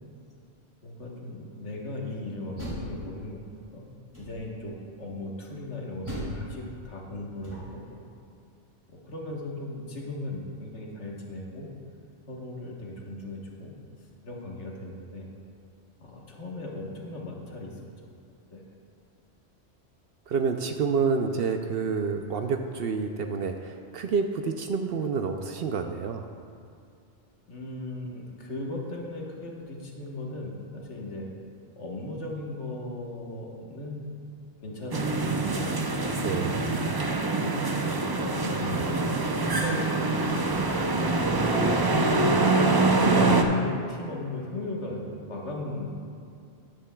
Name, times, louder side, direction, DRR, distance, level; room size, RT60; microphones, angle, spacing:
voice 1, 0.8-3.4 3.7-3.8 4.2-8.0 8.9-11.7 12.3-13.7 14.2-15.3 16.0-17.8 18.5-18.6 27.5-31.3 31.8-34.2 34.6-35.7 36.2-37.1 38.3-41.7 42.0-42.7 43.0-46.0, left 2 dB, 70° left, -2 dB, 1.6 m, -37 dB
Door, 2.3-3.6 4.1-4.7 6.0-7.9, equal, 20° right, 2.3 m, -38 dB
voice 2, 20.3-26.2 36.2-36.7, right 5 dB, 65° right, 6 dB, 0.7 m, -28 dB
sound 1, 34.9-43.4, right 3 dB, 35° right, 0.3 m, -25 dB
13.0 x 10.0 x 2.3 m, 2.5 s
omnidirectional pair, 1.2 m